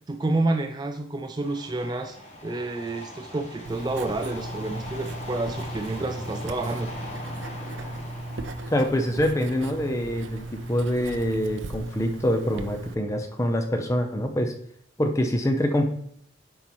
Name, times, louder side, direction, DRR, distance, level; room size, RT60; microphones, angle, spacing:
voice 1, 0.1-2.2 2.4-6.9, right 2 dB, 20° right, 5 dB, 0.3 m, -29 dB
sound 1, 1.4-13.8, left 1 dB, 35° left, 1.1 m, -42 dB
Writing, 3.6-12.9, right 2 dB, 80° right, 0.5 m, -36 dB
voice 2, 8.7-14.5 15.0-15.9, equal, 15° left, 5 dB, 0.6 m, -25 dB
8.3 x 5.5 x 3.1 m, 0.68 s
head